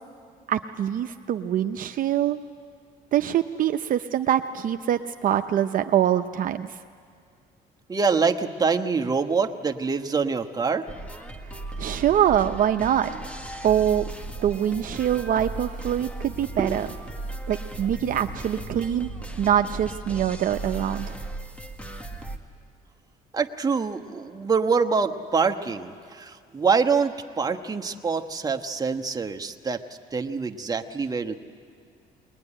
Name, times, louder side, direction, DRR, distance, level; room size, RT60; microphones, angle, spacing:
voice 1, 0.5-2.4 3.1-6.8 11.8-13.2 13.6-14.1 14.4-16.9 17.5-19.1 19.4-21.2, right 10 dB, 55° right, 7 dB, 0.6 m, -24 dB
voice 2, 7.9-10.9 16.6-16.9 23.3-29.8 30.1-31.3, right 5 dB, 20° right, 4 dB, 1.2 m, -25 dB
sound 1, 10.9-22.4, right 2 dB, 5° left, 1.6 m, -36 dB
22.0 x 20.5 x 10.0 m, 2.1 s
cardioid pair, 110°, 17 cm